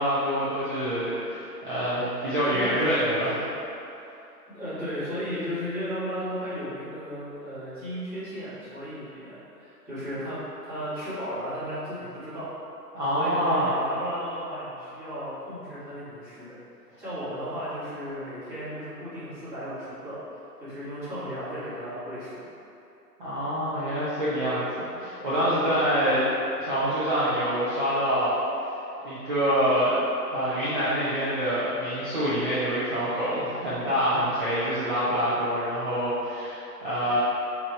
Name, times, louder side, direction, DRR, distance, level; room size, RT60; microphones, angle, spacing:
voice 1, 0.0-3.4 12.9-13.7 23.2-26.2 26.6-28.4 29.0-30.0 30.3-37.2, equal, 30° right, -12 dB, 0.7 m, -26 dB
voice 2, 2.4-3.5 4.5-10.4 10.6-12.5 13.1-16.5 17.0-20.2 20.6-22.5 25.6-25.8, equal, 5° right, -17 dB, 1.2 m, -35 dB
5.1 x 3.0 x 3.2 m, 2.8 s
figure-of-eight pair, 145°, 49 cm